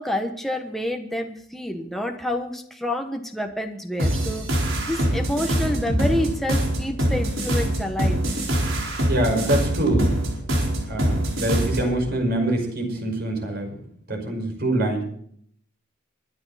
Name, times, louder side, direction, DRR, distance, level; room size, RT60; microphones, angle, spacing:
voice 1, 0.0-4.5 4.8-8.2, left 1 dB, ahead, 3 dB, 1.3 m, -28 dB
sound 1, 4.0-11.9, equal, 80° right, 4.4 m, -24 dB
voice 2, 9.1-10.1 10.9-13.7 14.1-15.0, right 1 dB, 55° right, 3 dB, 5.4 m, -24 dB
23.5 x 11.0 x 4.2 m, 0.64 s
head